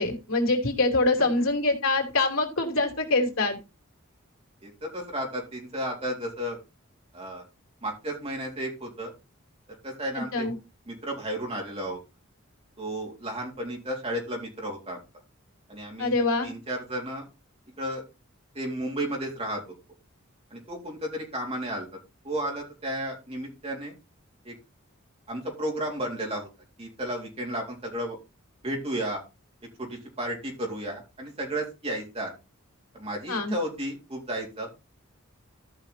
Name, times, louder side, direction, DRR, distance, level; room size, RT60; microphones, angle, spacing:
voice 1, 0.0-3.6 10.3-10.5 16.0-16.5 33.3-33.5, left 2 dB, 75° left, 3 dB, 3.1 m, -24 dB
voice 2, 4.6-6.6 7.1-7.4 7.8-9.1 9.8-10.4 10.9-12.0 12.8-15.0 15.7-17.3 17.8-18.0 18.5-19.6 20.5-21.9 22.2-23.9 24.4-24.5 25.3-26.5 26.8-28.2 28.6-29.2 29.8-32.3 32.9-34.7, right 1 dB, 30° right, 0 dB, 3.6 m, -33 dB
14.0 x 5.6 x 4.2 m, 0.27 s
head